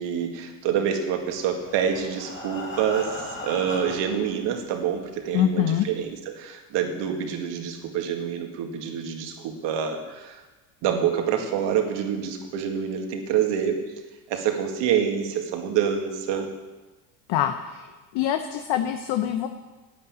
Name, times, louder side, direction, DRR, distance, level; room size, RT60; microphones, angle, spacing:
voice 1, 0.0-10.4 10.8-13.8 14.3-16.5, right 8 dB, 65° right, 4 dB, 2.2 m, -27 dB
Breathing, 1.4-4.3 5.1-5.2 5.5-5.6 6.1-6.2, left 2 dB, 25° left, 2.9 m, -37 dB
voice 2, 5.3-5.9 17.3-17.9 18.1-19.5, left 11 dB, 65° left, 7 dB, 1.0 m, -24 dB
10.0 x 9.7 x 7.5 m, 1.2 s
supercardioid pair, 95°, 45 cm